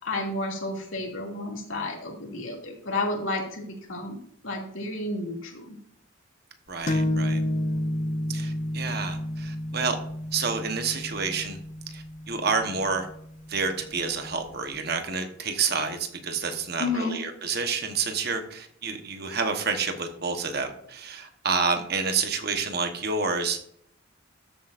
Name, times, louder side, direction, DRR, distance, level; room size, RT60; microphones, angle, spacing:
voice 1, 0.0-5.8 16.8-17.2, left 2 dB, 75° left, 0 dB, 2.5 m, -31 dB
voice 2, 6.7-7.4 8.3-10.0 10.3-11.6 11.9-13.1 13.5-23.6, right 5 dB, 50° right, 6 dB, 1.2 m, -29 dB
sound 1, 6.9-14.4, left 1 dB, 35° left, 0.6 m, -31 dB
13.5 x 7.7 x 2.6 m, 0.67 s
head